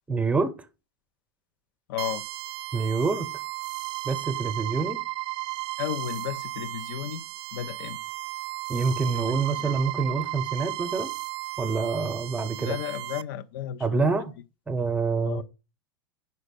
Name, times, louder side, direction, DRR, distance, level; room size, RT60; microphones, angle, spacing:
voice 1, 0.1-0.5 2.7-3.3 4.0-5.0 8.7-11.1 11.6-12.8 13.8-14.3 14.7-15.4, right 4 dB, 10° right, 0.8 m, -26 dB
voice 2, 1.9-2.2 5.8-7.2 7.5-8.0 9.1-9.7 12.6-14.1 15.2-15.4, left 11 dB, 65° left, 0.5 m, -34 dB
sound 1, 2.0-13.2, right 20 dB, 60° right, 0.4 m, -35 dB
5.4 x 3.9 x 5.2 m
hypercardioid pair, 95°, 12 cm